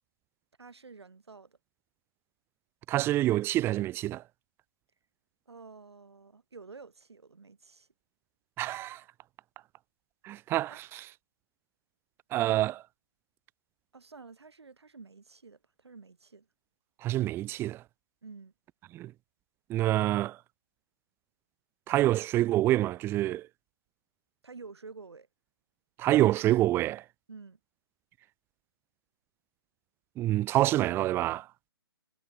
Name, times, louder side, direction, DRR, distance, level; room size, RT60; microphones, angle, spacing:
voice 1, 0.6-1.6 5.5-7.9 10.7-10.8 13.9-16.5 18.2-18.5 24.4-25.3 27.3-27.6, right 4 dB, 85° right, 6.9 m, -50 dB
voice 2, 2.9-4.2 8.6-9.0 10.2-11.0 12.3-12.8 17.0-17.8 18.9-19.1 19.7-20.4 21.9-23.5 26.0-27.0 30.2-31.4, right 15 dB, 15° right, 1.4 m, -27 dB
hypercardioid pair, 145°, 13 cm